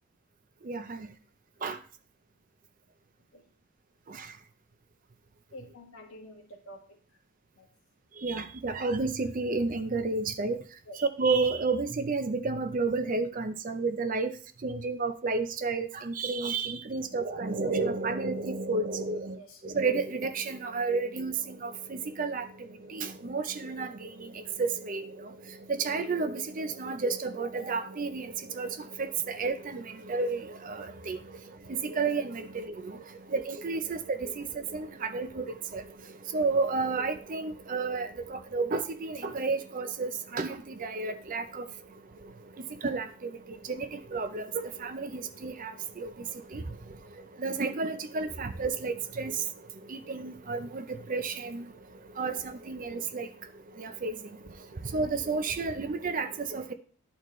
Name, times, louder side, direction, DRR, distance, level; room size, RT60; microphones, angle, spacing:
voice 1, 5.5-7.0 7.5-7.7 10.9-11.0 19.3-19.6, equal, 70° left, 1.6 m, -48 dB
voice 2, 8.2-10.6 11.2-14.3 14.6-19.3 19.6-21.3 21.6-21.7 22.2-22.4 22.9-23.9 24.6-25.0 25.8-28.3 28.6-28.7 29.0-29.1 29.4-29.8 30.1-30.4 30.7-30.8 31.1-31.2 31.8-32.7 33.3-34.4 34.7-34.9 35.1-35.4 35.7-35.8 36.3-38.1 38.5-40.5 40.8-41.4 42.8-43.1 43.8-44.4 44.8-45.7 46.0-46.1 46.5-46.6 47.4-49.3 50.1-50.8 51.1-51.6 52.2-52.3 52.7-53.3 54.0-54.1 54.9-56.7, right 3 dB, 40° right, 0.5 m, -30 dB
11.0 x 4.3 x 3.1 m
head